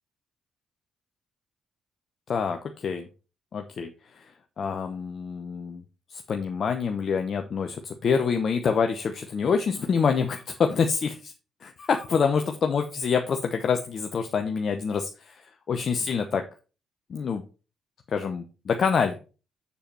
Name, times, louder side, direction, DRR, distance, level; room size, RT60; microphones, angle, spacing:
voice 1, 2.3-3.1 3.5-4.3 4.6-5.8 6.1-11.3 11.6-16.4 17.1-17.4 18.1-19.2, left 6 dB, 55° left, 5 dB, 0.8 m, -26 dB
7.1 x 6.8 x 4.3 m, 0.34 s
hypercardioid pair, 45°, 0 cm